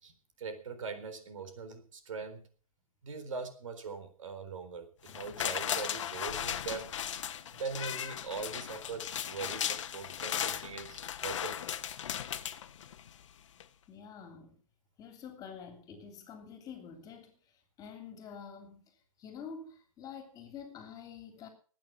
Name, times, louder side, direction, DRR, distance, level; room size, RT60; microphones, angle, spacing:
voice 1, 0.0-2.5 3.0-6.9 7.5-11.6, right 5 dB, 65° right, 4.1 m, -41 dB
sound 1, 5.1-13.2 13.6-13.7, left 10 dB, 55° left, 1.3 m, -37 dB
voice 2, 13.9-14.6 15.0-17.4 17.8-21.5, left 6 dB, 20° left, 3.1 m, -47 dB
19.0 x 9.2 x 5.9 m
hypercardioid pair, 135°, 18 cm